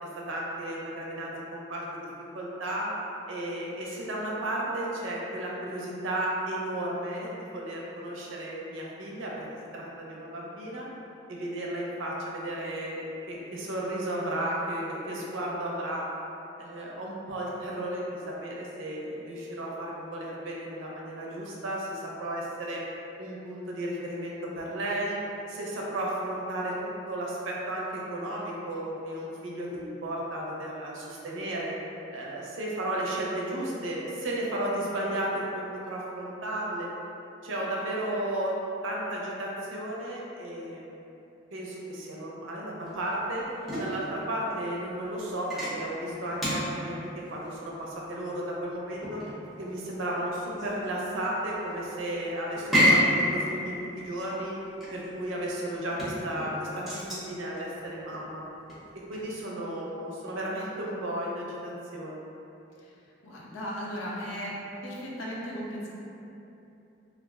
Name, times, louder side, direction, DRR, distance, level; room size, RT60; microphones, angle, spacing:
voice 1, 0.0-2.0 2.3-2.9 3.3-9.4 9.7-10.9 11.3-16.1 16.6-22.8 23.2-25.2 25.5-31.7 32.1-36.9 37.4-38.6 38.8-41.0 41.5-43.5 43.8-49.2 49.6-54.6 54.9-58.4 58.9-62.2, right 1 dB, 80° right, -3 dB, 0.5 m, -34 dB
sound 1, 42.8-59.4, equal, ahead, 0.7 m, -31 dB
voice 2, 63.2-64.6 64.8-65.9, equal, 80° left, -5 dB, 0.5 m, -36 dB
2.4 x 2.0 x 3.4 m, 2.9 s
head